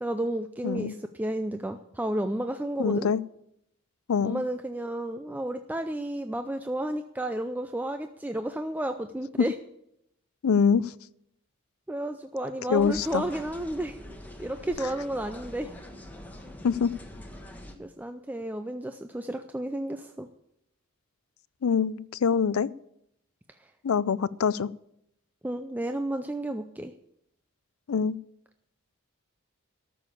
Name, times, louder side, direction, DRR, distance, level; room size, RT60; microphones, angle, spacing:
voice 1, 0.0-3.1 4.2-9.6 11.9-14.0 14.4-15.7 17.8-20.3 23.6-23.7 25.4-26.9, right 1 dB, 10° right, 7 dB, 0.4 m, -32 dB
voice 2, 2.8-3.2 4.1-4.4 10.4-10.9 12.7-13.2 16.6-16.9 21.6-22.7 23.8-24.7 27.9-28.2, left 6 dB, 85° left, 20 dB, 0.4 m, -24 dB
sound 1, 12.7-17.7, left 1 dB, 10° left, 1.3 m, -44 dB
13.0 x 7.0 x 8.4 m, 0.77 s
head